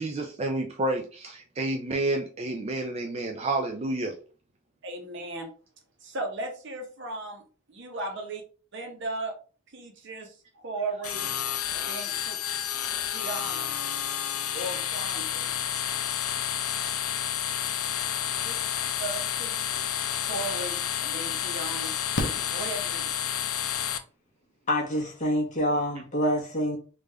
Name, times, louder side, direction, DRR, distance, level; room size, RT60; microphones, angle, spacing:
voice 1, 0.0-4.2 14.2-14.5 18.4-18.9, right 2 dB, 30° right, 2 dB, 0.4 m, -30 dB
voice 2, 4.8-5.5 6.0-8.4 8.7-9.3 9.7-11.3 11.7-12.4 13.1-13.7 14.5-15.5 18.4-18.6 19.0-21.9 22.5-23.1, right 2 dB, 55° right, 3 dB, 0.9 m, -36 dB
sound 1, 11.0-24.0, left 10 dB, 80° left, 0.5 m, -30 dB
Fireworks, 20.5-20.6 22.1-23.5 25.2-25.3 25.5-25.6, left 1 dB, 55° left, 0.8 m, -34 dB
voice 3, 24.7-26.8, equal, 35° left, -2 dB, 1.2 m, -26 dB
3.3 x 2.5 x 3.3 m, 0.37 s
head